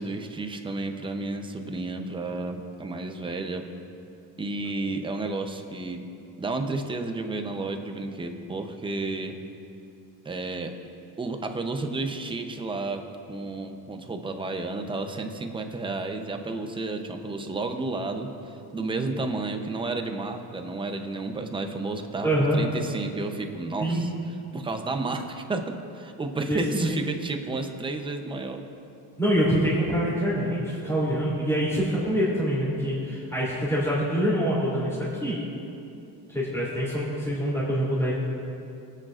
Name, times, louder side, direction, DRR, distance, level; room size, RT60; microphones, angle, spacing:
voice 1, 0.0-3.7 4.4-6.1 6.4-9.4 10.2-10.8 11.2-24.1 24.5-28.7, right 3 dB, 15° right, 5 dB, 0.6 m, -31 dB
voice 2, 22.2-22.6 23.8-24.0 26.5-27.0 29.2-35.4 36.3-38.1, equal, 5° left, -10 dB, 3.0 m, -25 dB
23.5 x 9.1 x 2.5 m, 2.7 s
cardioid pair, 155°, 40 cm